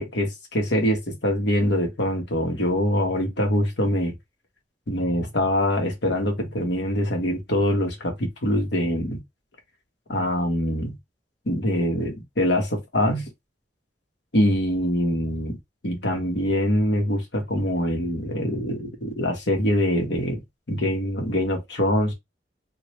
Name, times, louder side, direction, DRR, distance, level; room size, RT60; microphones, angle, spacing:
voice 1, 0.0-4.1 4.9-9.2 10.1-11.0 11.5-13.3 14.3-15.6 15.8-22.1, left 1 dB, 70° left, 1.1 m, -24 dB
3.0 x 2.5 x 3.2 m
head